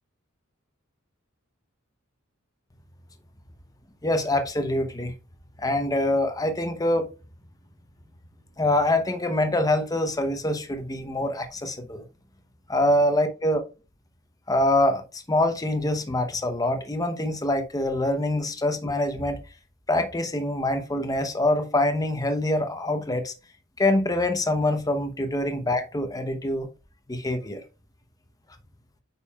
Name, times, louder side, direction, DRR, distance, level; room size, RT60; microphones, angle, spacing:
voice 1, 4.0-5.1 5.6-7.1 8.6-12.0 12.7-13.6 14.5-19.4 19.9-23.3 23.8-26.7 27.1-27.6, left 1 dB, 15° left, 0.8 m, -25 dB
8.4 x 5.4 x 2.3 m
head